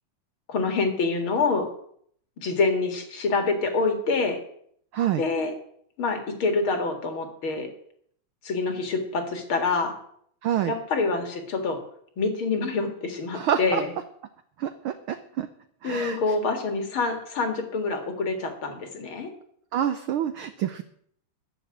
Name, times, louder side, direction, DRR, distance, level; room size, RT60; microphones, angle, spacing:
voice 1, 0.5-1.7 2.4-4.4 5.2-5.5 6.0-7.7 8.4-9.9 10.7-11.8 12.2-13.9 15.8-19.3, left 4 dB, 50° left, 6 dB, 2.5 m, -26 dB
voice 2, 4.9-5.2 10.4-10.7 13.3-13.8 14.6-15.5 15.8-16.2 19.7-20.8, right 10 dB, 85° right, 10 dB, 1.1 m, -27 dB
13.5 x 6.3 x 9.8 m, 0.65 s
omnidirectional pair, 3.3 m